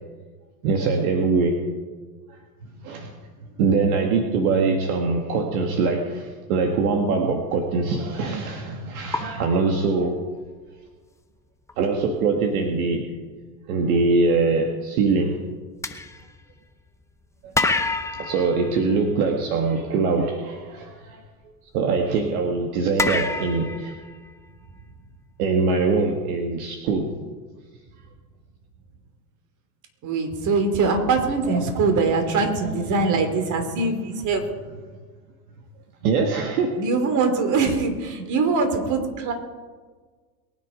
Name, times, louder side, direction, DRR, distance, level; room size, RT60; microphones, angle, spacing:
voice 1, 0.6-1.6 2.8-3.1 3.6-10.2 11.8-13.1 13.7-15.4 17.4-17.5 18.2-21.2 21.7-23.9 25.4-27.1 31.4-31.9 32.3-33.5 36.0-36.8, right 4 dB, 60° right, 3 dB, 2.0 m, -23 dB
sound 1, 7.9-8.2 9.1-10.5 11.7-11.8 12.2-12.4 15.8-17.0 17.5-19.6 23.0-24.8, left 3 dB, 5° left, 0.9 m, -29 dB
voice 2, 30.0-34.4 36.7-39.3, right 4 dB, 35° right, 6 dB, 3.2 m, -22 dB
22.5 x 10.0 x 5.1 m, 1.5 s
hypercardioid pair, 105°, 50 cm